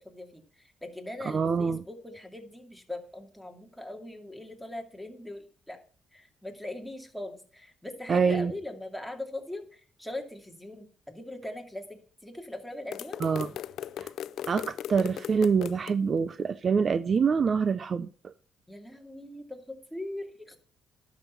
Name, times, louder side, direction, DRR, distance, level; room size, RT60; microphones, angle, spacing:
voice 1, 0.0-5.8 6.1-13.2 18.7-20.6, left 1 dB, ahead, 2.4 m, -41 dB
voice 2, 1.3-1.8 8.1-8.5 13.2-13.5 14.0-14.1 14.5-18.1, right 6 dB, 45° right, 0.5 m, -25 dB
sound 1, 12.9-15.9, left 10 dB, 75° left, 0.4 m, -38 dB
11.5 x 6.2 x 5.8 m
cardioid pair, 90°, 0 cm